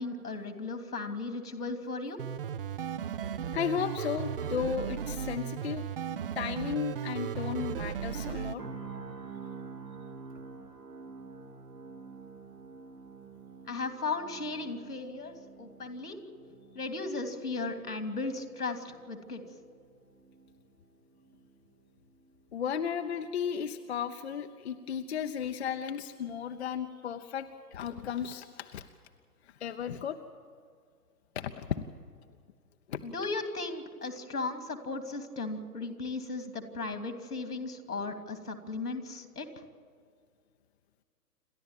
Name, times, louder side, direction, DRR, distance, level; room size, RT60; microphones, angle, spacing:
voice 1, 0.0-2.2 13.7-16.2 16.7-19.4 33.0-39.5, left 3 dB, 75° left, 7 dB, 3.0 m, -36 dB
sound 1, 2.2-8.5, right 8 dB, 35° right, 0.7 m, -35 dB
voice 2, 3.5-5.9 6.3-8.6 22.5-28.8 29.4-30.2 31.3-31.9 32.9-33.0, left 8 dB, 45° left, 7 dB, 0.9 m, -34 dB
sound 2, 8.6-22.6 22.9-23.1, right 4 dB, 85° right, 4.1 m, -49 dB
28.5 x 12.5 x 9.0 m, 2.1 s
figure-of-eight pair, 125°, 46 cm